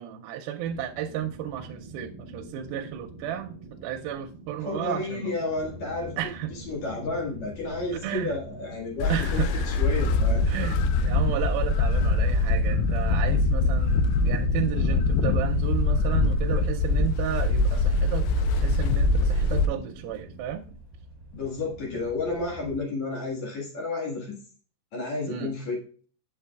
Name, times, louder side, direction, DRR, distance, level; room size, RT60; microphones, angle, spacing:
voice 1, 0.0-5.3 6.2-6.5 8.0-8.3 9.1-9.8 10.5-18.3 18.6-20.8 25.3-25.5, right 10 dB, 80° right, 4 dB, 2.3 m, -33 dB
sound 1, 0.6-20.4, right 3 dB, 60° right, 1.1 m, -46 dB
voice 2, 4.7-6.2 6.5-10.4 21.3-24.4 24.9-26.0, left 3 dB, 55° left, -2 dB, 2.7 m, -31 dB
sound 2, 5.5-22.8, left 1 dB, 15° right, 1.6 m, -48 dB
sound 3, 9.0-19.7, left 3 dB, 90° left, 2.6 m, -23 dB
8.4 x 6.6 x 2.3 m, 0.41 s
omnidirectional pair, 4.5 m